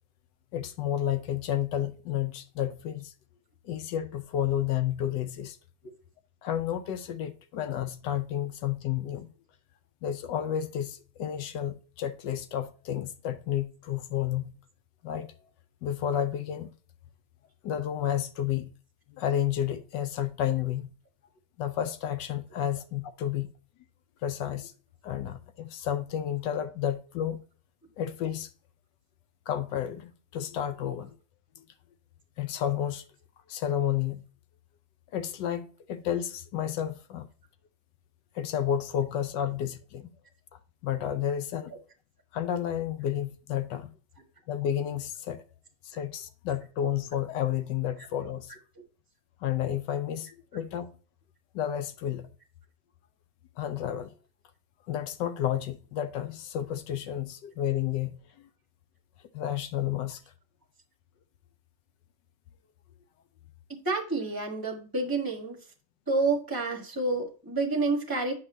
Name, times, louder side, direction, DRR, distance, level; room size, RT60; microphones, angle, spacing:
voice 1, 0.5-3.1 3.6-5.6 6.4-9.3 10.0-14.6 15.0-15.3 15.8-16.7 17.6-18.7 19.1-20.9 21.6-23.5 24.2-24.7 25.0-27.4 28.0-28.5 29.5-31.2 31.6-31.7 32.4-33.0 33.5-34.2 35.1-37.3 38.3-40.1 40.8-41.7 42.3-43.9 44.5-45.4 45.8-48.5 49.4-50.9 51.5-52.3 53.6-54.1 54.9-58.5 59.3-60.2, left 10 dB, 70° left, 1.2 m, -31 dB
voice 2, 63.8-65.6 66.1-68.3, right 3 dB, 15° right, 1.1 m, -29 dB
8.4 x 5.4 x 2.6 m
omnidirectional pair, 2.1 m